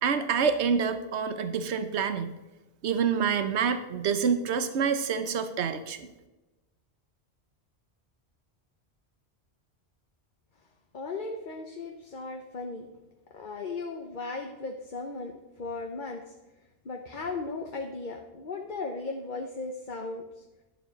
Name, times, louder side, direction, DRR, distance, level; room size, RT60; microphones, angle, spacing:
voice 1, 0.0-2.3 2.8-6.1, right 6 dB, 85° right, 10 dB, 1.1 m, -27 dB
voice 2, 10.9-12.9 13.3-16.3 16.8-20.4, left 3 dB, 50° left, 2 dB, 1.1 m, -36 dB
11.5 x 7.4 x 5.2 m, 1.1 s
omnidirectional pair, 1.1 m